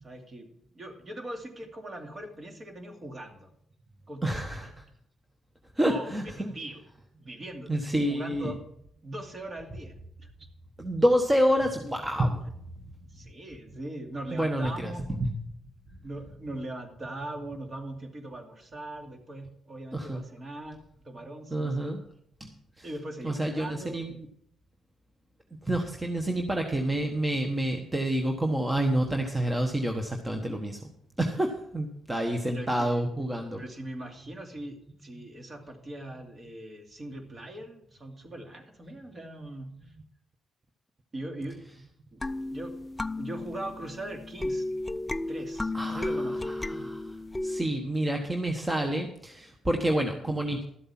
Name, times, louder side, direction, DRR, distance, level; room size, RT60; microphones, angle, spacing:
voice 1, 0.0-0.5 0.7-3.5 4.1-4.7 5.8-6.8 7.2-8.6 9.0-10.3 13.1-15.1 16.0-22.0 22.8-24.1 32.5-33.1 33.5-39.9 41.1-41.6 42.1-42.2 42.5-42.7 43.2-44.6 45.3-46.5, right 1 dB, 35° right, 3 dB, 2.5 m, -40 dB
voice 2, 4.2-4.7 5.8-6.5 7.7-8.5 10.8-12.5 14.3-14.9 15.2-15.3 19.9-20.2 21.5-22.0 22.4-22.5 22.8-22.9 23.2-24.1 25.6-30.8 31.2-33.6 35.2-35.3 45.7-47.0 47.4-50.6, right 1 dB, 15° right, 3 dB, 1.2 m, -28 dB
sound 1, 42.2-47.6, left 2 dB, 15° left, 0.4 m, -33 dB
12.5 x 7.8 x 6.0 m, 0.72 s
cardioid pair, 90°, 0 cm